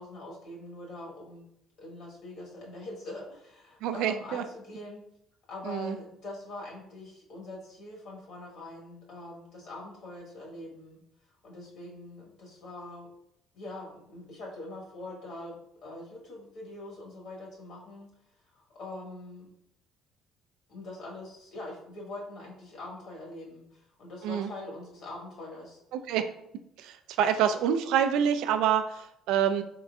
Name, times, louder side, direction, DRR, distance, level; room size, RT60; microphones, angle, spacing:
voice 1, 0.0-1.5 1.8-5.0 5.5-11.0 11.4-13.1 13.5-18.1 18.5-19.5 20.7-25.8 27.2-27.3, left 2 dB, 55° left, -2 dB, 1.2 m, -43 dB
voice 2, 3.8-4.4 5.7-6.0 24.2-24.5 25.9-26.3 26.8-29.6, right 8 dB, 80° right, 9 dB, 0.3 m, -27 dB
4.2 x 3.7 x 2.3 m, 0.78 s
cardioid pair, 175°, 0 cm